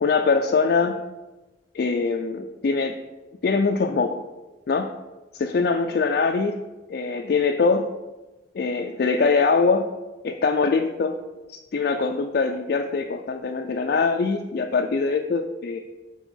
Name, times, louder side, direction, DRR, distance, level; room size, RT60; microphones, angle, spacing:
voice 1, 0.0-1.0 1.7-3.0 3.4-4.2 4.7-4.9 5.3-6.6 6.9-7.9 8.5-9.9 10.2-11.2 11.5-15.8, left 4 dB, 55° left, 4 dB, 0.3 m, -23 dB
6.0 x 4.3 x 5.5 m, 1.1 s
head